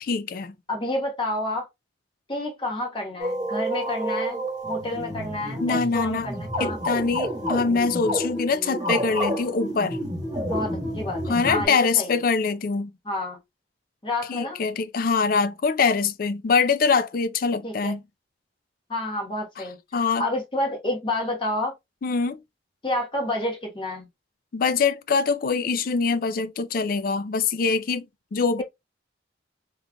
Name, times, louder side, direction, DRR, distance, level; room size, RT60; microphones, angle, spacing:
voice 1, 0.0-0.5 5.6-6.3 6.6-10.0 11.3-12.9 14.3-18.0 19.9-20.2 22.0-22.4 24.5-28.6, left 5 dB, 50° left, 0.4 m, -24 dB
voice 2, 0.7-1.7 2.3-6.8 10.5-12.2 13.0-13.4 14.0-14.6 17.6-17.9 18.9-19.8 20.2-21.7 22.8-24.1, left 1 dB, 30° left, 1.1 m, -29 dB
sound 1, 3.2-11.6, equal, 20° right, 1.2 m, -29 dB
3.7 x 3.1 x 2.2 m
head